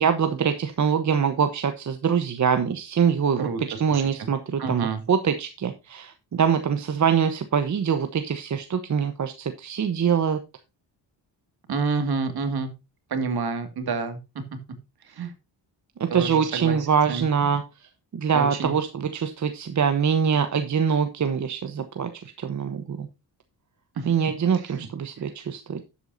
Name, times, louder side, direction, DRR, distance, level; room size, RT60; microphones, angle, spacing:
voice 1, 0.0-10.4 16.0-22.1 22.4-23.1 24.1-25.8, right 7 dB, 40° right, 8 dB, 1.0 m, -24 dB
voice 2, 3.4-4.3 4.6-5.0 11.7-12.7 13.1-14.4 15.1-15.3 16.1-16.8 17.1-17.3 18.3-18.8 24.0-24.1 24.6-24.7, right 4 dB, 55° right, 8 dB, 2.3 m, -28 dB
11.5 x 8.3 x 2.7 m, 0.26 s
cardioid pair, 105°, 44 cm